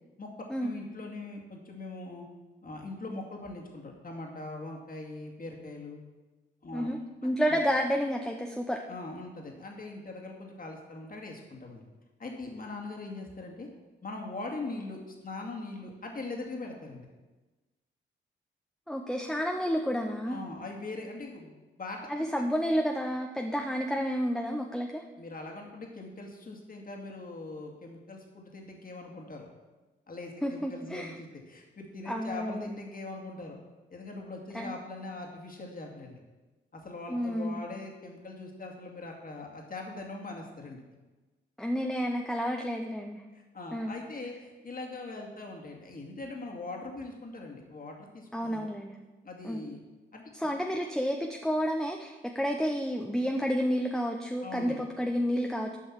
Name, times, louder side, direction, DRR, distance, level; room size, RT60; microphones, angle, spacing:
voice 1, 0.6-2.2 2.6-6.0 6.6-6.9 7.5-7.6 8.9-11.8 12.2-13.7 14.0-17.1 20.3-22.2 25.2-29.5 30.1-33.6 33.9-36.2 36.7-40.8 43.3-48.7 49.2-49.8 50.1-50.2 54.4-54.8, left 2 dB, 45° left, 0 dB, 2.3 m, -41 dB
voice 2, 6.7-8.8 18.9-20.4 22.1-25.0 30.4-31.2 32.1-32.7 34.5-34.8 37.1-37.6 41.6-43.2 43.7-43.9 48.3-49.0 49.4-49.6 50.3-55.8, equal, ahead, 2 dB, 0.9 m, -30 dB
8.5 x 5.4 x 7.4 m, 1.2 s
supercardioid pair, 55°, 20 cm